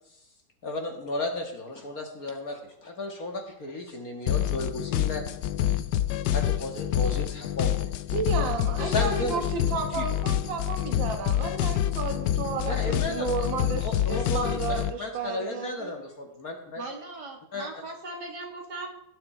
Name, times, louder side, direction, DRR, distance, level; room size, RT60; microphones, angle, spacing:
voice 1, 0.6-5.2 6.3-7.9 8.8-9.4 9.9-10.1 12.6-13.5 13.8-16.8 17.5-17.7, left 1 dB, 50° left, 2 dB, 2.1 m, -34 dB
sound 1, 4.3-14.9, left 12 dB, 75° left, 1.2 m, -27 dB
voice 2, 8.1-16.0, right 5 dB, 90° right, 5 dB, 2.0 m, -32 dB
voice 3, 16.8-18.9, right 2 dB, 65° right, 2 dB, 2.8 m, -39 dB
17.0 x 10.0 x 4.4 m, 0.79 s
omnidirectional pair, 2.0 m